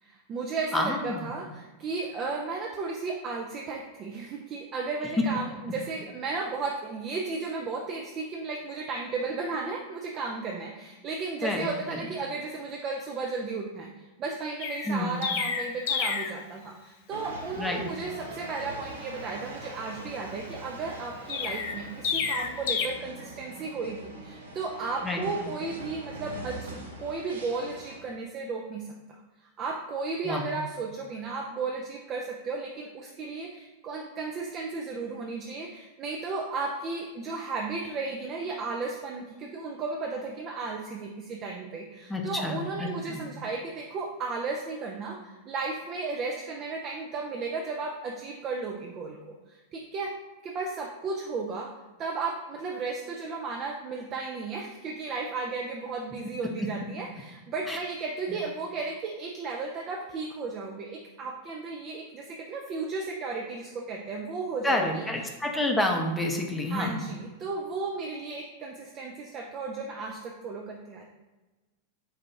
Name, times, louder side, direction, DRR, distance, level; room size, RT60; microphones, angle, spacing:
voice 1, 0.0-13.9 14.2-28.9 29.6-49.2 49.5-50.1 50.4-51.7 52.0-65.0 66.7-71.0, right 4 dB, 30° right, 0 dB, 0.5 m, -34 dB
voice 2, 0.7-1.3 11.4-12.1 14.9-15.1 17.6-17.8 25.0-25.2 30.2-30.5 42.1-43.2 57.7-57.8 64.6-67.0, left 1 dB, 10° left, 1 dB, 0.7 m, -29 dB
Chirp tweet, 14.6-16.4 21.3-22.9, left 6 dB, 50° left, 0.4 m, -30 dB
sound 1, 17.1-28.0, right 2 dB, 70° right, 0.8 m, -43 dB
4.7 x 2.4 x 4.5 m, 1.2 s
figure-of-eight pair, 90°, 0 cm